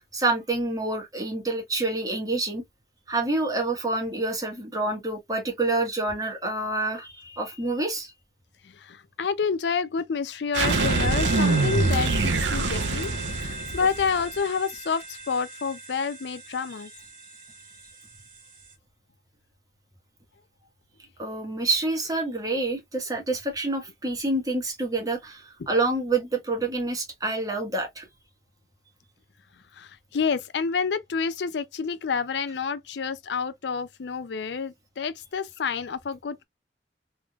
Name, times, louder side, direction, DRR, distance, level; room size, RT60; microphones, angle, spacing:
voice 1, 0.0-2.6 3.1-8.1 21.2-28.1, right 2 dB, 20° right, 1.3 m, -27 dB
voice 2, 8.6-16.9 25.6-25.7 29.7-36.4, left 5 dB, 75° left, 0.5 m, -29 dB
sound 1, 10.5-18.7, right 1 dB, 50° right, 1.3 m, -36 dB
sound 2, 10.5-14.2, right 3 dB, 85° right, 0.7 m, -24 dB
3.5 x 3.2 x 2.3 m
head